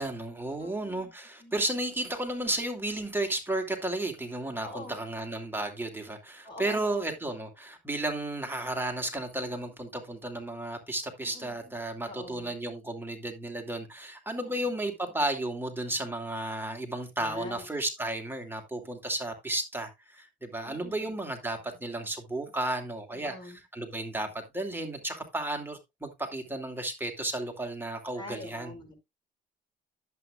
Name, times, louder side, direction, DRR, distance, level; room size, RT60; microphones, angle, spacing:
voice 1, 0.0-28.7, right 1 dB, 10° right, 2.6 m, -33 dB
voice 2, 0.5-1.1 1.4-1.7 4.6-5.0 6.4-7.0 11.2-11.6 12.0-12.5 14.4-14.7 17.2-17.6 20.6-21.1 23.1-23.6 28.1-29.0, left 2 dB, 25° left, 4.9 m, -44 dB
11.0 x 8.2 x 2.4 m
cardioid pair, 90°, 20 cm